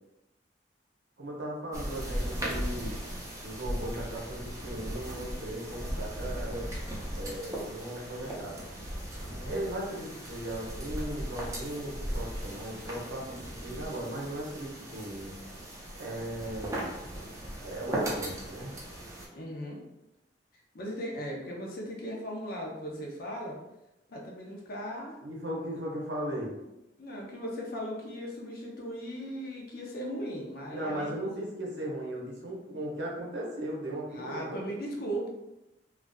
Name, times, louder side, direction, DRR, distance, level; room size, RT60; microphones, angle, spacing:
voice 1, 1.2-3.0 3.4-6.7 7.2-8.6 9.4-15.3 16.0-16.9 17.6-18.7 25.2-26.5 30.7-34.7, right 1 dB, 85° right, -2 dB, 0.7 m, -37 dB
sound 1, 1.7-19.3, right 1 dB, 20° right, 0.5 m, -38 dB
voice 2, 9.2-9.5 19.3-19.8 20.7-23.6 24.1-25.2 27.0-31.2 34.1-35.3, equal, 60° left, -1 dB, 0.6 m, -38 dB
2.5 x 2.3 x 2.2 m, 0.92 s
head